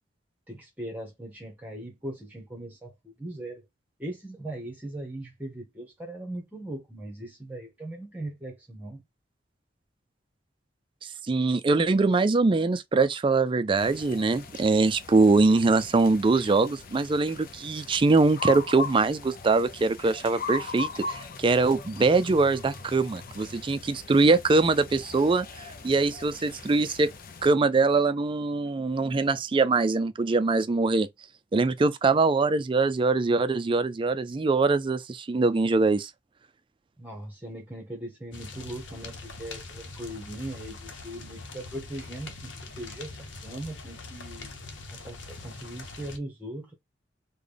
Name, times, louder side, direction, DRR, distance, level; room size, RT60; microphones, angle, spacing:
voice 1, 0.5-3.6 4.0-9.0 37.0-44.5 44.9-46.7, right 1 dB, 10° right, 1.0 m, -39 dB
voice 2, 11.3-27.1 27.4-31.1 31.5-36.1, right 3 dB, 30° right, 0.4 m, -23 dB
sound 1, 13.8-27.5, left 3 dB, 50° left, 0.5 m, -40 dB
sound 2, 38.3-46.2, left 3 dB, 90° left, 0.8 m, -43 dB
3.9 x 2.2 x 3.3 m
head